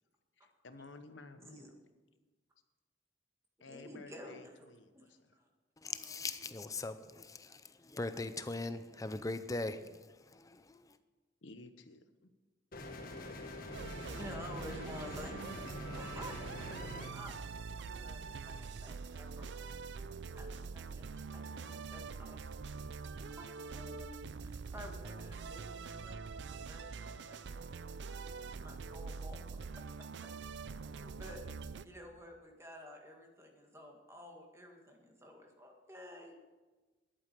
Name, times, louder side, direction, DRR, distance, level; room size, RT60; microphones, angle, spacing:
voice 1, 0.4-1.7 3.6-5.3 11.4-12.3, left 3 dB, 90° left, 1.0 m, -54 dB
voice 2, 3.7-4.7 4.9-5.5 14.1-19.8 20.4-22.6 23.0-27.4 28.1-29.4 30.0-30.3 30.9-31.4 31.8-36.3, equal, 15° right, 1.8 m, -52 dB
voice 3, 5.8-11.0, left 3 dB, 20° left, 0.5 m, -40 dB
sound 1, 12.7-17.1, left 2 dB, 50° left, 1.5 m, -45 dB
sound 2, 13.7-31.8, right 4 dB, 70° right, 0.5 m, -44 dB
11.5 x 8.7 x 6.8 m
head